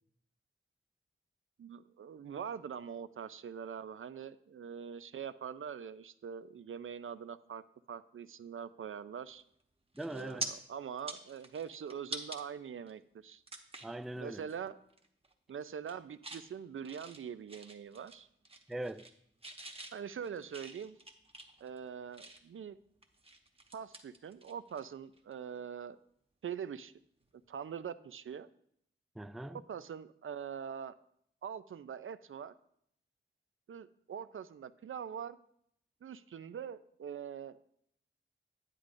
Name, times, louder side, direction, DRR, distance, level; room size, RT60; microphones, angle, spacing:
voice 1, 1.6-9.4 10.1-13.4 14.2-14.8 15.5-18.3 19.9-21.0 21.6-22.8 23.7-26.0 26.4-26.9 27.5-28.5 29.5-30.9 31.4-32.5 33.7-35.4 36.0-37.6, right 7 dB, 75° right, 0.5 m, -43 dB
sound 1, 9.4-9.6 10.0-10.5 10.9-12.4 12.9-13.0 13.5-14.0 14.4-14.6 14.9-15.3 15.7-16.5 16.8-18.2 18.4-19.2 19.4-22.6 23.0-24.8 25.1-25.3 27.2-27.4, right 2 dB, 25° right, 1.1 m, -46 dB
voice 2, 9.9-10.5 13.8-14.4 18.7-19.1 29.2-29.6, right 1 dB, ahead, 0.3 m, -41 dB
9.9 x 9.5 x 2.6 m
wide cardioid pair, 75°, 21 cm